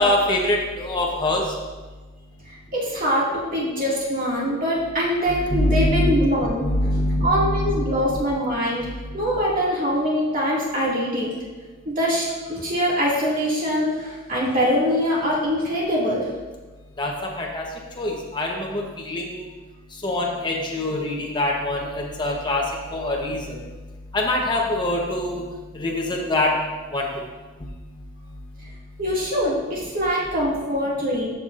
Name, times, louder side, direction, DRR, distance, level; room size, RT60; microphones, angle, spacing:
voice 1, 0.0-1.4 5.3-6.1 6.6-7.7 8.1-8.2 8.8-8.9 17.0-17.1 17.4-17.6 18.0-19.4 20.0-22.6 22.9-23.6 24.1-25.4 25.7-26.5 26.9-27.1, left 1 dB, 25° left, -1 dB, 0.9 m, -24 dB
voice 2, 2.5-6.6 7.2-8.9 9.1-11.3 11.9-16.3 29.0-31.3, equal, 45° right, -6 dB, 2.2 m, -23 dB
13.0 x 6.0 x 2.5 m, 1.3 s
head